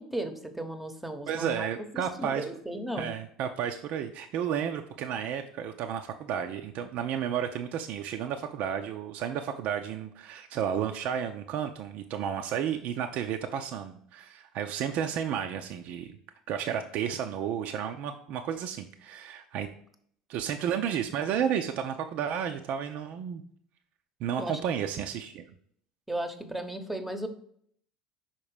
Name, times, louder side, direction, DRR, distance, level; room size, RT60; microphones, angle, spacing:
voice 1, 0.0-1.7 1.9-3.1 24.4-24.6 26.1-27.3, right 1 dB, 5° right, 6 dB, 0.9 m, -35 dB
voice 2, 1.3-2.5 3.0-16.1 16.5-19.7 20.3-23.4 24.2-25.4, right 8 dB, 55° right, 5 dB, 0.5 m, -32 dB
5.9 x 4.2 x 4.8 m, 0.62 s
figure-of-eight pair, 65°, 3 cm